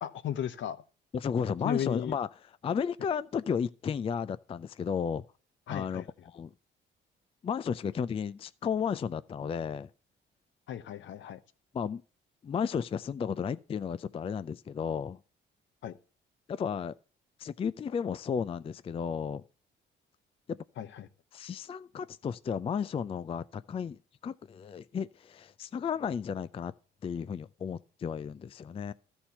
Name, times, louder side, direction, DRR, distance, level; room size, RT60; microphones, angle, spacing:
voice 1, 0.0-0.8 1.6-2.2 5.7-6.1 10.7-11.4 15.8-16.0 20.8-21.1, left 10 dB, 70° left, 0.9 m, -35 dB
voice 2, 1.1-2.3 2.6-5.2 5.7-6.5 7.4-9.9 11.7-12.0 12.4-15.2 16.5-16.9 17.4-19.4 21.3-24.0 24.2-26.7 27.0-28.9, left 7 dB, 30° left, 0.3 m, -33 dB
13.0 x 4.4 x 5.5 m
cardioid pair, 90°, 20 cm